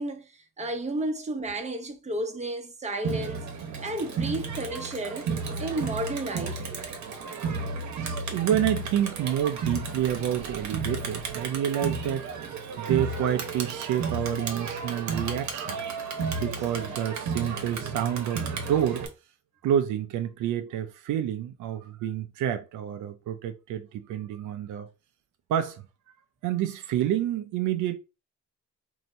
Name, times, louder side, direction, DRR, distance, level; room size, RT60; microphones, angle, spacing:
voice 1, 0.0-3.5 3.8-5.3 5.6-6.6, right 1 dB, 20° right, 0.9 m, -32 dB
Crowd, 3.0-19.1, right 4 dB, 65° right, 1.0 m, -33 dB
voice 2, 8.2-12.3 12.8-16.1 16.3-19.1 19.6-24.9 25.5-25.8 26.4-28.0, right 10 dB, 80° right, 0.5 m, -28 dB
2.8 x 2.6 x 4.3 m
cardioid pair, 90°, 30 cm